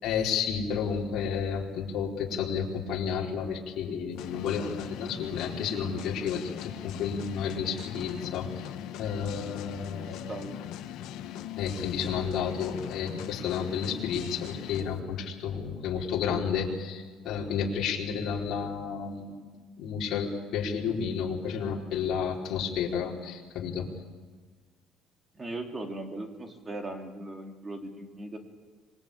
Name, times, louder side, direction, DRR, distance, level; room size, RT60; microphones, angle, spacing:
voice 1, 0.0-8.7 9.0-10.3 11.5-19.3 19.8-23.9, left 6 dB, 55° left, -2 dB, 4.4 m, -31 dB
sound 1, 4.2-14.9, left 11 dB, 70° left, 1.3 m, -40 dB
voice 2, 10.0-10.6 25.3-28.4, right 2 dB, 20° right, 4 dB, 2.6 m, -38 dB
26.0 x 21.5 x 8.8 m, 1.4 s
cardioid pair, 170°, 0 cm